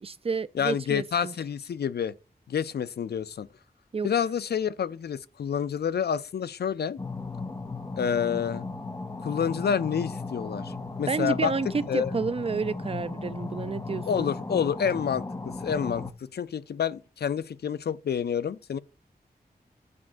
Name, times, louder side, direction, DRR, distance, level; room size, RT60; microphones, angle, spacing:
voice 1, 0.0-1.3 3.9-4.1 11.1-14.3, right 5 dB, 35° right, 0.4 m, -30 dB
voice 2, 0.5-2.1 2.5-3.5 4.0-7.0 8.0-8.6 9.2-10.7 11.0-11.5 11.9-12.1 14.1-16.0 16.3-18.8, left 7 dB, 80° left, 0.4 m, -28 dB
sound 1, 7.0-16.1, left 3 dB, 20° left, 0.6 m, -36 dB
9.6 x 5.9 x 2.5 m
wide cardioid pair, 95°, 17 cm